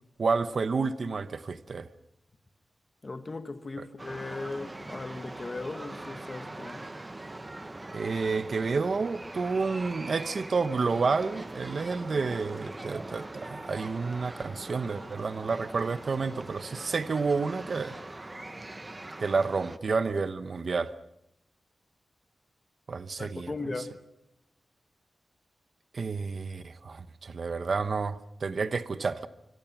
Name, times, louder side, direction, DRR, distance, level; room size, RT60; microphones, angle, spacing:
voice 1, 0.2-1.9 3.8-3.9 7.9-17.9 19.2-20.9 22.9-23.5 25.9-29.3, right 4 dB, 50° right, 0.9 m, -30 dB
voice 2, 3.0-6.8 18.4-18.5 23.2-23.9, left 3 dB, 30° left, 1.8 m, -38 dB
sound 1, 4.0-19.8, right 2 dB, 20° right, 1.0 m, -42 dB
25.0 x 25.0 x 6.0 m
wide cardioid pair, 150°, 0 cm